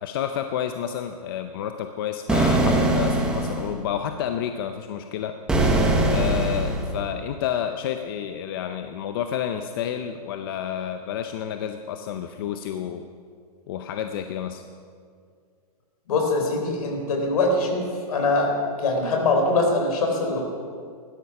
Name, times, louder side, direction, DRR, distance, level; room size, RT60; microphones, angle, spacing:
voice 1, 0.0-5.4 6.1-13.0 13.7-14.6, left 9 dB, 35° left, 7 dB, 0.6 m, -30 dB
sound 1, 2.3-3.7 5.5-6.9, right 2 dB, 5° right, 1.0 m, -21 dB
voice 2, 16.1-17.8 18.1-20.5, left 2 dB, 65° left, 2 dB, 3.9 m, -23 dB
16.0 x 12.5 x 5.8 m, 2.1 s
supercardioid pair, 175°, 20 cm